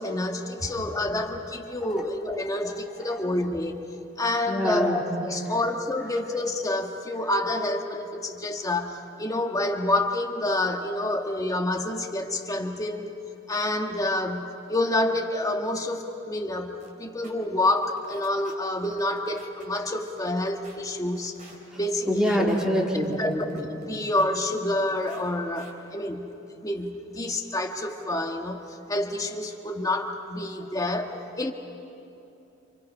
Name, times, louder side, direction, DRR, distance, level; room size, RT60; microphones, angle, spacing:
voice 1, 0.0-3.8 4.2-13.1 13.5-21.3 21.8-22.5 23.2-31.5, left 1 dB, 20° left, 3 dB, 1.6 m, -28 dB
voice 2, 4.5-5.0 21.7-21.8 22.1-23.4, equal, 5° right, -2 dB, 3.1 m, -25 dB
sound 1, 16.8-16.9 17.2-17.3 17.7-18.5 18.8-19.6 20.0-20.8 21.1-21.6 22.0-22.6 23.0-24.2 24.6-25.3 25.5-25.7, right 3 dB, 40° right, 4.1 m, -50 dB
30.0 x 27.5 x 5.5 m, 2.8 s
head